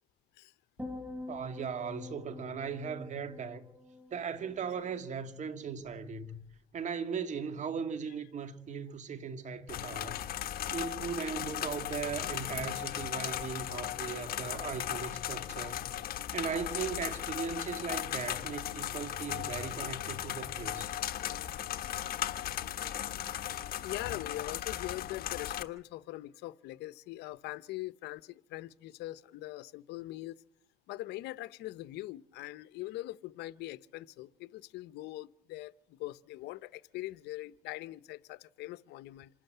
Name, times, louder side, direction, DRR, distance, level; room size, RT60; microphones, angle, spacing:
sound 1, 0.8-5.2 5.5-5.9, left 2 dB, 10° right, 3.3 m, -46 dB
voice 1, 1.3-3.6 4.1-6.4 6.7-10.2 10.7-15.9 16.3-20.9, right 6 dB, 45° right, 2.2 m, -38 dB
sound 2, 9.7-25.6, left 11 dB, 65° left, 1.3 m, -37 dB
voice 2, 23.8-30.4 30.9-39.3, left 17 dB, 85° left, 0.8 m, -42 dB
27.0 x 12.5 x 9.2 m
cardioid pair, 110°, 17 cm